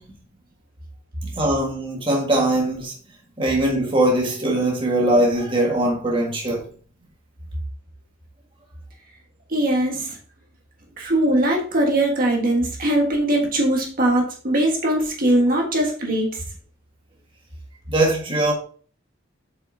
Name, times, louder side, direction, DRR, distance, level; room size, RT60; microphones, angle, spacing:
voice 1, 1.3-2.9 3.4-6.6 17.9-18.5, right 1 dB, 25° right, 1.6 m, -21 dB
voice 2, 9.5-10.2 11.0-16.4, right 1 dB, 50° right, 1.5 m, -21 dB
7.6 x 5.6 x 2.7 m
head